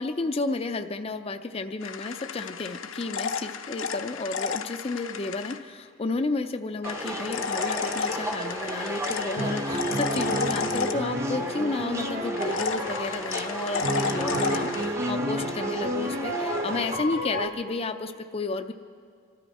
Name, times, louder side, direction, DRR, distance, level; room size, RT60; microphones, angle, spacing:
voice 1, 0.0-18.7, left 3 dB, 30° left, 7 dB, 0.4 m, -32 dB
sound 1, 1.8-5.6 6.8-11.5 12.4-14.9, left 5 dB, 70° left, 0.7 m, -33 dB
sound 2, 6.8-17.0, right 1 dB, 15° right, 0.7 m, -35 dB
sound 3, 9.4-13.1 13.8-17.5, equal, 45° right, 1.5 m, -30 dB
25.5 x 13.0 x 4.2 m, 2.2 s
head